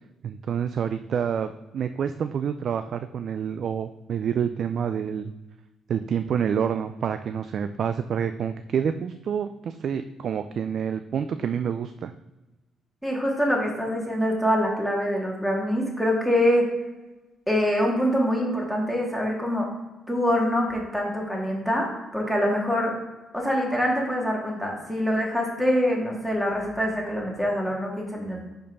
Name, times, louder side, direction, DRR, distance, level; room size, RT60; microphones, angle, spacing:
voice 1, 0.2-5.3 5.9-12.1, right 7 dB, 60° right, 10 dB, 0.3 m, -28 dB
voice 2, 13.0-16.7 17.5-19.7 20.1-22.9 23.3-28.4, equal, ahead, -1 dB, 2.0 m, -25 dB
5.3 x 4.4 x 5.4 m, 1.1 s
cardioid pair, 90°, 0 cm